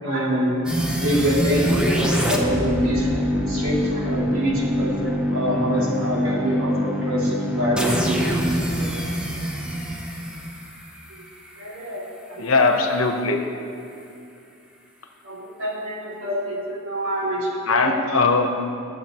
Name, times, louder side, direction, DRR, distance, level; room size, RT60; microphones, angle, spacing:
voice 1, 0.0-0.6 0.9-5.0 5.3-8.9 11.6-12.0 12.3-12.5 15.2-18.1, equal, 70° right, -5 dB, 2.6 m, -26 dB
sound 1, 0.7-11.6, equal, 5° right, 0.9 m, -25 dB
voice 2, 12.4-13.4 17.7-18.5, left 3 dB, 75° left, 4 dB, 1.0 m, -19 dB
18.5 x 7.5 x 3.0 m, 2.6 s
head